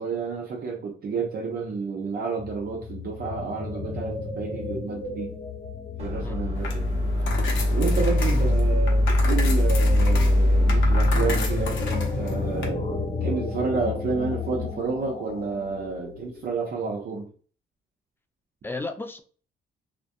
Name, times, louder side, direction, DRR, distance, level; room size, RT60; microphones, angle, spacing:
voice 1, 0.0-5.3 6.0-6.8 7.7-12.8 13.2-17.3, right 4 dB, 50° right, 0.6 m, -30 dB
sound 1, 2.4-16.5, left 4 dB, 45° left, 1.0 m, -33 dB
sound 2, 6.0-13.1, left 1 dB, 30° right, 1.0 m, -22 dB
voice 2, 6.2-6.6 8.3-8.5 18.6-19.2, left 3 dB, 10° left, 0.3 m, -34 dB
sound 3, 6.5-12.7, left 4 dB, 75° left, 0.7 m, -34 dB
2.3 x 2.2 x 2.5 m
cardioid pair, 90°, 20 cm